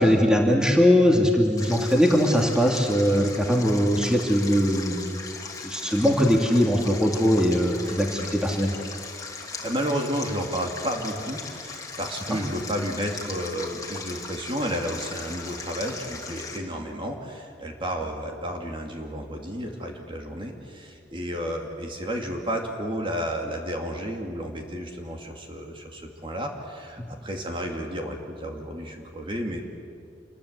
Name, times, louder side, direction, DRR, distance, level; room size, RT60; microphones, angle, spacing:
voice 1, 0.0-5.3 5.6-8.7 27.0-27.1, equal, 5° right, 1 dB, 2.6 m, -21 dB
Stream, 1.6-16.6, left 4 dB, 20° left, 2.7 m, -38 dB
voice 2, 9.4-29.6, equal, 30° right, 2 dB, 2.7 m, -32 dB
28.0 x 21.5 x 8.4 m, 2.3 s
head